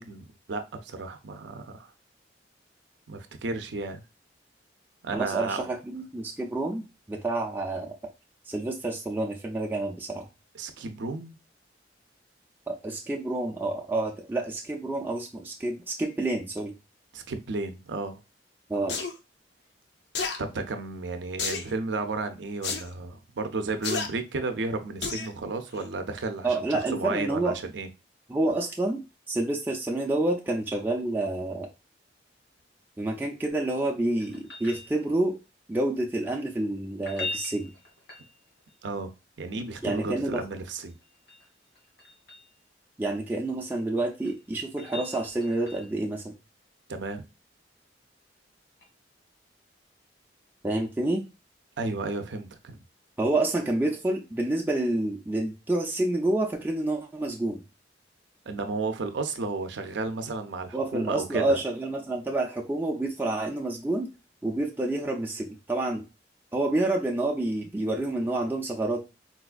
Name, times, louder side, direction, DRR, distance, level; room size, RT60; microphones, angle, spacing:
voice 1, 0.0-1.9 3.1-4.0 5.0-5.7 10.5-11.4 17.1-18.2 20.4-27.9 38.8-39.1 39.4-40.9 46.9-47.2 51.8-52.8 58.5-61.6, right 3 dB, 75° right, 0.5 m, -33 dB
voice 2, 5.1-7.9 8.5-10.3 12.7-16.7 18.7-19.0 26.4-27.6 28.3-29.0 29.3-31.7 33.0-35.4 35.7-37.7 39.8-40.4 43.0-46.3 50.6-51.2 53.2-57.6 60.7-64.1 64.4-66.0 66.5-69.0, right 2 dB, 10° right, 0.4 m, -28 dB
sound 1, 18.9-19.1 20.1-20.4 21.4-21.7 22.6-22.8 23.8-24.1 25.0-25.3 25.8-25.9, left 5 dB, 65° left, 0.5 m, -30 dB
sound 2, 34.2-35.4 36.9-38.7 40.9-42.5 43.9-46.0 48.8-48.9, left 3 dB, 85° left, 1.4 m, -41 dB
4.0 x 2.3 x 2.4 m
head